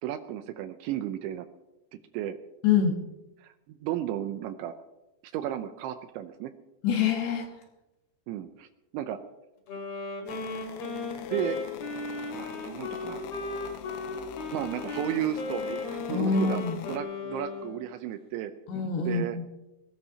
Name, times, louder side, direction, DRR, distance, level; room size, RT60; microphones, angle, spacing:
voice 1, 0.0-1.5 2.1-2.4 3.4-4.7 5.3-6.5 8.3-8.7 8.9-9.2 11.3-11.6 12.3-13.2 14.5-16.6 16.9-18.5 19.1-19.4, right 11 dB, 80° right, 8 dB, 2.8 m, -33 dB
voice 2, 6.8-7.5 16.1-16.8 18.7-19.4, left 6 dB, 65° left, 3 dB, 3.1 m, -25 dB
Wind instrument woodwind instrument, 9.7-17.9, left 3 dB, 45° left, 2.5 m, -36 dB
sound 1, 10.3-17.0, left 11 dB, 90° left, 3.4 m, -41 dB
21.0 x 19.5 x 2.9 m, 0.96 s
omnidirectional pair, 5.8 m